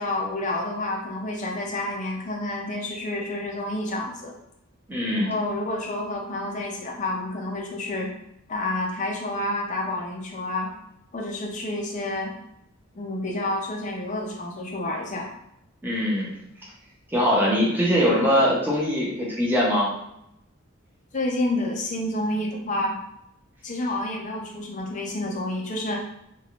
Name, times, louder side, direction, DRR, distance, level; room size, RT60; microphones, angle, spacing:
voice 1, 0.0-4.3 5.1-8.1 8.5-10.7 11.1-12.3 12.9-15.3 21.1-23.0 23.6-26.0, left 1 dB, 35° left, 0 dB, 0.5 m, -29 dB
voice 2, 4.9-5.3 15.8-16.3 17.1-19.9, equal, 10° right, -5 dB, 0.6 m, -22 dB
3.3 x 2.3 x 2.4 m, 0.80 s
head